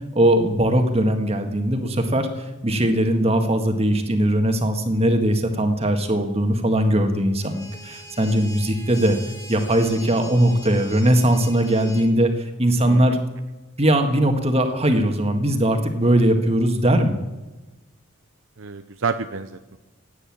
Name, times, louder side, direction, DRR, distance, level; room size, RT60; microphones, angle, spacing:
voice 1, 0.1-9.2 9.5-13.2 13.8-17.2, right 1 dB, 30° right, 6 dB, 1.8 m, -20 dB
sound 1, 7.4-12.1, left 1 dB, 15° left, 2.4 m, -41 dB
voice 2, 12.9-13.2 18.6-19.8, right 5 dB, 60° right, 9 dB, 0.7 m, -29 dB
17.0 x 9.6 x 8.7 m, 1.1 s
head